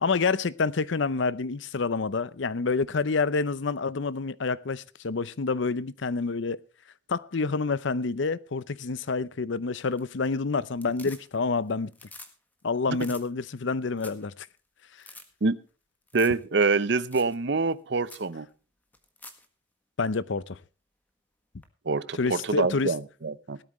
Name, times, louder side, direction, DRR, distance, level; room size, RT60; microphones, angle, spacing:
voice 1, 0.0-6.6 7.1-11.9 12.6-14.5 20.0-20.6 22.2-22.9, left 4 dB, 75° left, 0.6 m, -28 dB
sound 1, 9.8-10.3 10.6-11.6 11.9-12.3 12.6-12.7 12.9-13.2 13.7-13.8 14.0-14.3 14.6-14.7 15.0-15.2 16.1-16.4 16.7-16.8 17.1-17.3 17.7-17.8 18.1-18.3 18.9-19.4 21.6-21.7, left 2 dB, 10° left, 1.5 m, -47 dB
voice 2, 16.1-18.5 21.9-23.6, right 4 dB, 60° right, 0.7 m, -26 dB
18.0 x 12.5 x 3.1 m
head